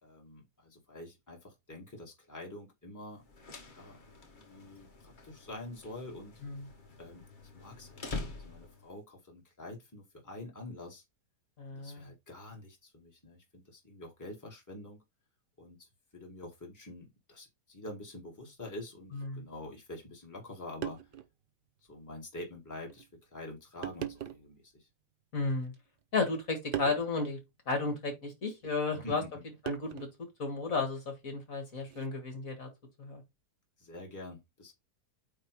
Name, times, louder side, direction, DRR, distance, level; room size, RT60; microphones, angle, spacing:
voice 1, 0.0-3.2 3.8-4.0 4.3-6.3 7.0-8.0 8.3-11.0 11.7-15.0 15.6-15.9 16.1-21.0 21.9-24.9 28.9-29.3 33.8-34.7, left 1 dB, 10° left, 2.1 m, -46 dB
sound 1, 3.2-9.0, left 3 dB, 35° left, 1.0 m, -46 dB
voice 2, 11.6-12.1 19.1-19.4 25.3-25.7 26.1-27.4 27.7-29.2 29.6-30.1 30.4-32.7 33.0-33.2, left 3 dB, 55° left, 2.3 m, -33 dB
sound 2, 19.1-19.3 20.4-20.5 20.8-21.3 21.9-22.0 22.9-23.1 23.8-24.5 25.4-26.0 26.7-27.1 28.6-28.8 29.7-30.2 31.8-32.1, right 10 dB, 85° right, 0.4 m, -40 dB
8.8 x 3.0 x 4.7 m
omnidirectional pair, 1.8 m